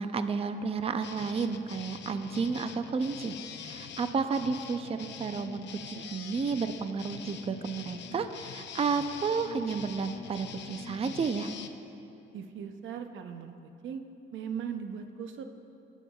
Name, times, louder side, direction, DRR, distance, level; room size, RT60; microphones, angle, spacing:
voice 1, 0.0-11.5, right 5 dB, 30° right, 9 dB, 0.5 m, -32 dB
sound 1, 1.0-11.7, left 7 dB, 65° left, 0.6 m, -44 dB
voice 2, 12.3-14.0 14.3-15.4, right 7 dB, 75° right, 6 dB, 0.7 m, -39 dB
19.5 x 9.1 x 2.3 m, 2.9 s
cardioid pair, 90°, 20 cm